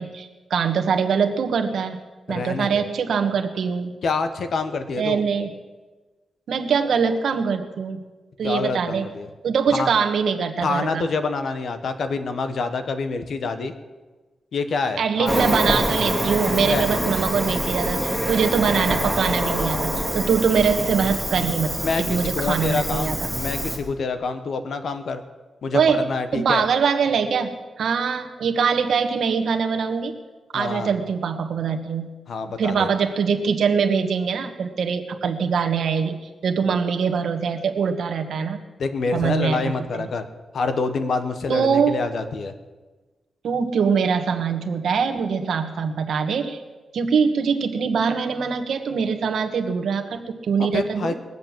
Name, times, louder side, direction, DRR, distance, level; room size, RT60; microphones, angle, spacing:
voice 1, 0.0-2.0 2.3-3.9 5.0-5.5 6.5-8.0 8.4-9.1 9.4-11.0 15.0-23.2 25.7-26.0 26.3-30.2 30.5-32.1 32.6-38.6 39.1-40.1 41.5-42.0 43.4-46.6 46.9-51.1, right 6 dB, 75° right, 5 dB, 1.4 m, -23 dB
voice 2, 2.3-2.9 4.0-5.2 8.4-9.3 9.8-9.9 10.6-13.7 14.5-15.3 16.6-17.2 21.8-25.2 25.6-26.7 30.5-30.9 32.3-32.9 36.6-36.7 38.8-40.2 40.5-42.5 50.6-51.1, left 4 dB, 65° left, 9 dB, 1.2 m, -27 dB
Cricket, 15.3-23.8, right 1 dB, 5° left, 2.4 m, -25 dB
21.0 x 7.9 x 7.4 m, 1.3 s
wide cardioid pair, 120°, 0 cm